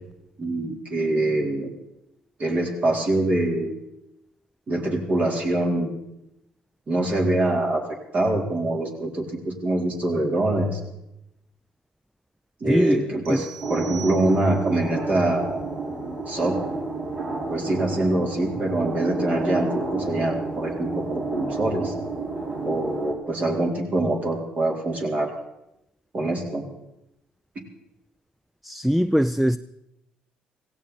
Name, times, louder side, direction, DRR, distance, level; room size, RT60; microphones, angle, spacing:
voice 1, 0.4-1.7 2.4-3.7 4.7-5.9 6.9-7.8 8.1-10.8 12.6-15.6 16.3-16.6 17.5-21.9 22.6-25.3 26.1-26.6, right 1 dB, 45° right, 4.0 m, -24 dB
voice 2, 12.7-13.0 13.3-13.4 28.6-29.6, equal, 5° right, 0.4 m, -21 dB
sound 1, 13.3-14.8, right 10 dB, 80° right, 2.3 m, -42 dB
sound 2, 13.6-23.1, right 3 dB, 65° right, 4.9 m, -30 dB
17.0 x 16.0 x 4.3 m
supercardioid pair, 65°, 3 cm